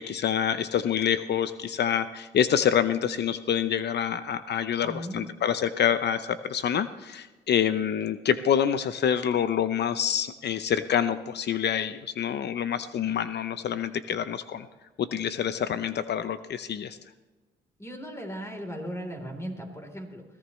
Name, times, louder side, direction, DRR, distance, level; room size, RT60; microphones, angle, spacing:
voice 1, 0.0-14.7 15.0-17.0, left 8 dB, 60° left, 12 dB, 0.7 m, -27 dB
voice 2, 4.8-5.2 17.8-20.2, equal, 15° left, 3 dB, 3.6 m, -37 dB
21.0 x 16.0 x 3.2 m, 1.2 s
cardioid pair, 90°, 20 cm